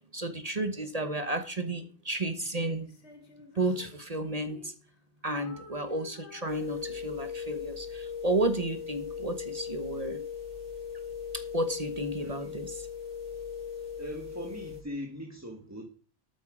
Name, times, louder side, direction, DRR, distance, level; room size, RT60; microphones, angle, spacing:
voice 1, 0.1-2.9 3.5-4.7 5.2-10.2 11.3-12.7, right 1 dB, 35° right, 8 dB, 1.1 m, -32 dB
Female singing, 2.8-5.0 5.3-7.4, left 2 dB, 65° left, 2.1 m, -51 dB
sound 1, 6.5-14.8, left 7 dB, 55° right, 5.1 m, -39 dB
voice 2, 12.2-12.6 14.0-15.9, equal, 15° right, 3 dB, 1.4 m, -40 dB
12.0 x 8.8 x 4.9 m, 0.41 s
omnidirectional pair, 1.2 m